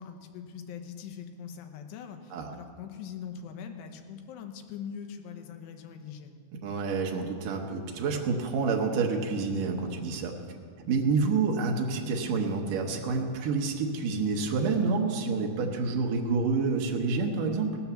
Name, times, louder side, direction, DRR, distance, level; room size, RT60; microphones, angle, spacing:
voice 1, 0.0-6.4, left 7 dB, 75° left, 5 dB, 2.8 m, -42 dB
voice 2, 6.6-10.4 10.9-17.8, right 4 dB, 75° right, 1 dB, 1.9 m, -28 dB
17.5 x 7.0 x 7.0 m, 2.3 s
omnidirectional pair, 5.2 m